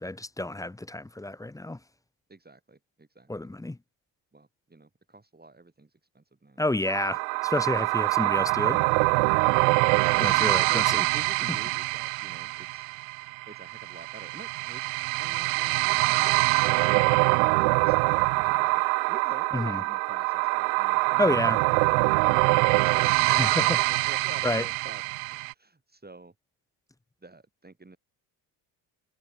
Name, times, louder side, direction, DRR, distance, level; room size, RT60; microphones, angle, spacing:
voice 1, 0.0-1.8 3.3-3.8 6.6-8.8 10.2-11.0 19.5-19.8 21.2-21.6 23.3-23.8 24.4-24.6, left 1 dB, 5° left, 0.7 m, -29 dB
voice 2, 2.3-3.5 4.3-6.9 7.5-7.7 10.1-12.9 13.5-17.5 17.9-18.8 19.1-25.0 25.3-26.3 27.2-28.0, right 3 dB, 20° right, 7.3 m, -48 dB
sound 1, 6.9-25.5, right 40 dB or more, 90° right, 0.6 m, -24 dB
supercardioid pair, 70°, 50 cm